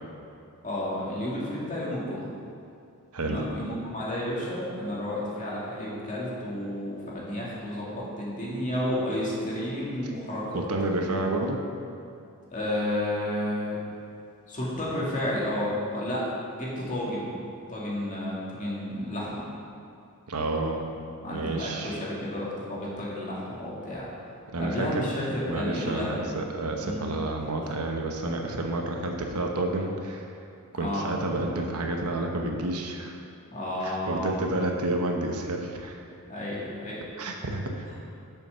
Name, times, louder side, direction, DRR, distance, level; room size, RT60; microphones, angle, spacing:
voice 1, 0.6-2.3 3.2-10.6 12.5-13.8 14.5-16.2 16.5-17.4 17.7-19.5 21.2-24.1 24.6-26.2 26.8-27.1 27.6-27.7 30.8-31.1 33.5-34.3 36.3-37.0 37.9-38.0, left 1 dB, 35° left, -6 dB, 2.1 m, -31 dB
voice 2, 3.1-3.4 10.5-11.6 20.3-20.9 21.3-21.9 24.5-25.1 25.5-30.3 30.7-33.2 33.8-36.0 37.2-37.9, right 2 dB, 80° right, 2 dB, 0.9 m, -30 dB
6.9 x 6.2 x 5.7 m, 2.4 s
head